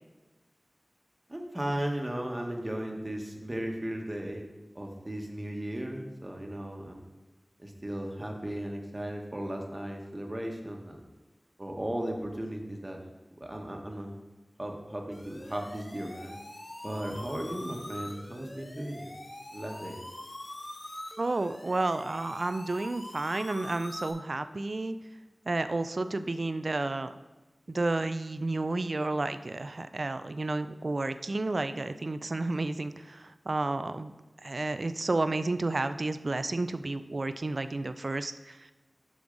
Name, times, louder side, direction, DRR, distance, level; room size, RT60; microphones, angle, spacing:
voice 1, 1.3-4.4 4.7-7.1 7.6-11.1 11.6-13.0 13.4-14.2 14.6-16.4 16.8-19.1 19.5-20.0, right 1 dB, 30° right, 2 dB, 1.2 m, -36 dB
sound 1, 15.1-24.1, left 1 dB, 55° left, 1.0 m, -44 dB
voice 2, 21.2-25.0 25.5-27.1 27.7-34.1 34.4-38.7, right 2 dB, 65° right, 11 dB, 0.3 m, -31 dB
6.9 x 6.3 x 3.9 m, 1.2 s
wide cardioid pair, 45°, 0 cm